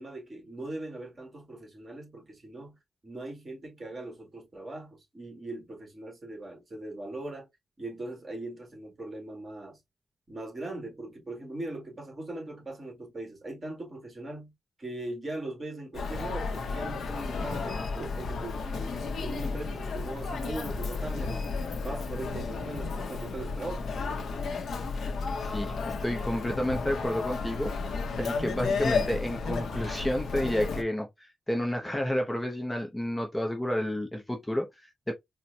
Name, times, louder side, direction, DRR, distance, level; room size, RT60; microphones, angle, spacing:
voice 1, 0.0-2.7 3.0-7.5 7.8-9.8 10.3-14.5 14.8-23.9, right 2 dB, 35° right, 1.8 m, -40 dB
Human voice, 15.9-30.8, left 4 dB, 85° left, 0.8 m, -33 dB
voice 2, 25.4-27.7 28.2-35.1, left 1 dB, 10° left, 0.6 m, -31 dB
4.3 x 2.1 x 2.6 m
wide cardioid pair, 135°, 0 cm